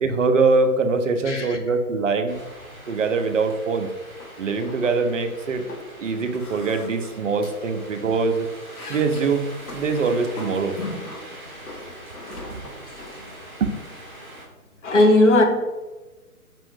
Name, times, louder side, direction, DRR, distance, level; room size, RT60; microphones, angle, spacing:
voice 1, 0.0-2.4 2.9-3.9 4.4-5.6 6.0-8.5 8.9-10.8 12.2-12.7 13.6-13.8, right 4 dB, 55° right, 7 dB, 0.5 m, -23 dB
voice 2, 1.3-1.6 7.6-7.7 10.8-11.0 14.8-15.4, left 2 dB, 50° left, 2 dB, 0.9 m, -17 dB
sound 1, 2.3-14.4, right 1 dB, 5° left, 0.5 m, -43 dB
sound 2, 4.2-4.3 4.6-5.0 5.2-5.9 6.3-7.9 8.3-11.2 11.7-13.1, left 2 dB, 75° left, 1.1 m, -40 dB
5.3 x 2.5 x 3.7 m, 1.2 s
figure-of-eight pair, 140°, 45 cm